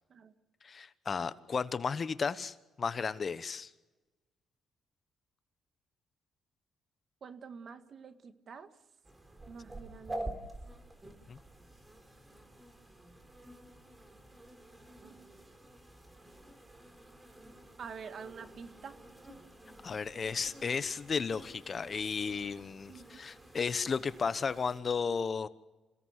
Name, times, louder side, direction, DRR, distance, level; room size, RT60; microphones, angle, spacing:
voice 1, 0.6-3.7 11.3-11.4 19.8-25.5, left 5 dB, 40° left, 1.1 m, -34 dB
voice 2, 7.2-8.7 9.5-10.5 15.0-15.4 17.8-19.0 22.9-23.2, right 6 dB, 55° right, 1.9 m, -48 dB
sound 1, 9.0-24.8, right 1 dB, 15° right, 3.7 m, -49 dB
28.0 x 17.5 x 8.1 m
cardioid pair, 90°, 0 cm